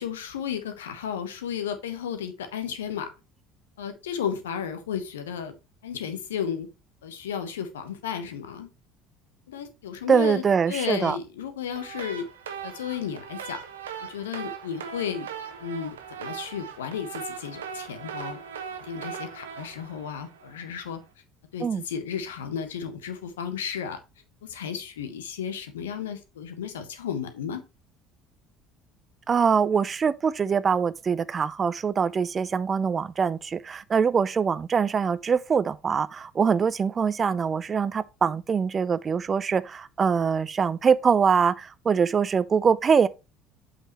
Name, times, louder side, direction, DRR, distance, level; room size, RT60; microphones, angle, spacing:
voice 1, 0.0-3.1 3.8-5.5 5.8-6.7 7.0-8.7 9.5-12.3 12.6-13.6 14.0-15.3 15.6-18.4 18.8-21.0 21.5-24.0 24.4-27.6, left 8 dB, 70° left, 1.1 m, -33 dB
voice 2, 10.1-11.2 21.6-21.8 29.3-43.1, right 6 dB, 30° right, 0.4 m, -23 dB
sound 1, 11.7-20.8, right 7 dB, 75° right, 0.9 m, -39 dB
8.1 x 5.7 x 3.1 m
figure-of-eight pair, 60°, 0 cm